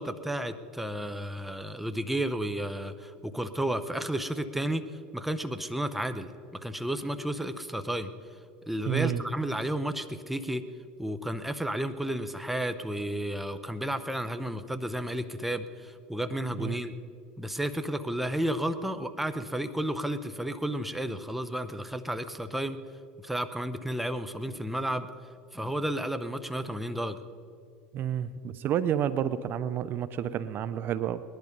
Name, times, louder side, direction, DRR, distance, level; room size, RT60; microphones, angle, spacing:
voice 1, 0.0-4.9 5.1-6.3 6.6-8.1 8.7-10.6 11.0-16.9 17.4-22.8 23.2-25.1 25.5-27.2, right 1 dB, 5° right, 9 dB, 0.8 m, -32 dB
voice 2, 8.9-9.2 16.6-16.7 27.9-31.2, right 10 dB, 45° right, 14 dB, 0.5 m, -30 dB
19.5 x 11.0 x 5.3 m, 2.3 s
hypercardioid pair, 95°, 5 cm